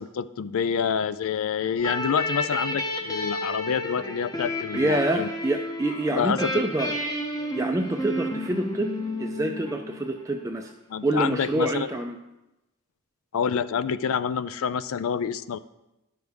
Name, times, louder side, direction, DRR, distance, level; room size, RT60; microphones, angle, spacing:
voice 1, 0.0-5.3 6.2-6.6 10.9-11.9 13.3-15.6, left 7 dB, 65° left, 15 dB, 0.4 m, -27 dB
sound 1, 1.8-10.3, left 1 dB, 15° left, 0.7 m, -31 dB
voice 2, 4.7-7.0 7.5-8.9 9.2-10.7 11.0-12.2, right 1 dB, 15° right, 3 dB, 0.4 m, -26 dB
10.5 x 6.4 x 3.5 m, 0.93 s
head